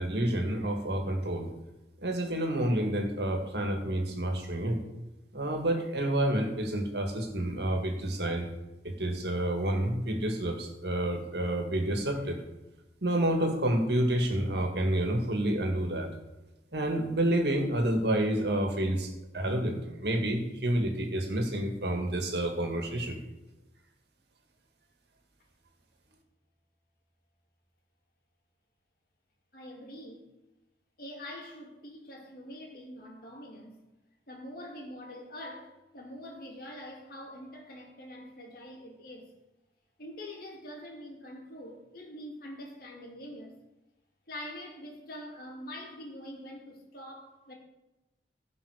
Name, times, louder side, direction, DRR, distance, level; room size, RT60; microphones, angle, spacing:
voice 1, 0.0-1.5 2.0-4.8 5.3-8.5 8.8-12.4 13.0-16.1 16.7-23.2, right 1 dB, 70° right, 1.9 m, -29 dB
voice 2, 29.5-30.3 31.0-33.8 34.3-39.3 40.0-43.6 44.3-47.5, left 1 dB, 55° left, 2.5 m, -44 dB
16.5 x 5.5 x 5.0 m
head